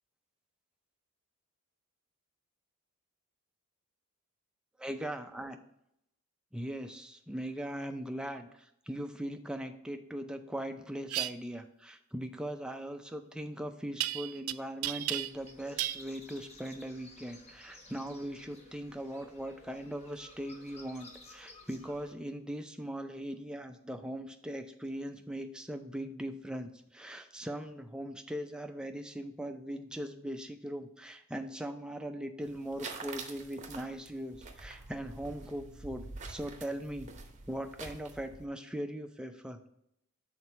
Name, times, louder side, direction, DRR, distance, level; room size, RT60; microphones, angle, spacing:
voice 1, 4.8-5.6 6.5-37.1 37.5-39.7, right 1 dB, 5° right, 6 dB, 0.4 m, -40 dB
sound 1, 11.1-11.3 14.0-14.5 14.8-15.5 15.8-16.0, right 14 dB, 75° right, 0.4 m, -33 dB
sound 2, 15.2-22.1, left 2 dB, 30° left, 1.0 m, -55 dB
sound 3, 32.4-38.5, right 4 dB, 35° right, 0.8 m, -47 dB
6.2 x 4.2 x 5.5 m, 0.75 s
head